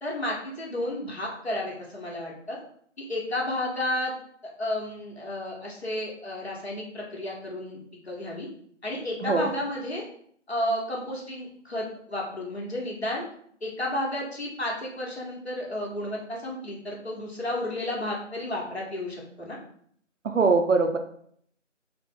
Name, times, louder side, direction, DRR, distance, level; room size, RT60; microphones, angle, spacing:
voice 1, 0.0-2.6 3.0-4.1 4.6-7.8 8.0-8.5 8.8-10.0 10.5-13.2 13.6-19.6, left 1 dB, 55° left, -2 dB, 1.1 m, -32 dB
voice 2, 20.2-21.0, right 4 dB, 80° right, 6 dB, 0.6 m, -22 dB
3.4 x 2.0 x 3.5 m, 0.64 s
figure-of-eight pair, 175°, 37 cm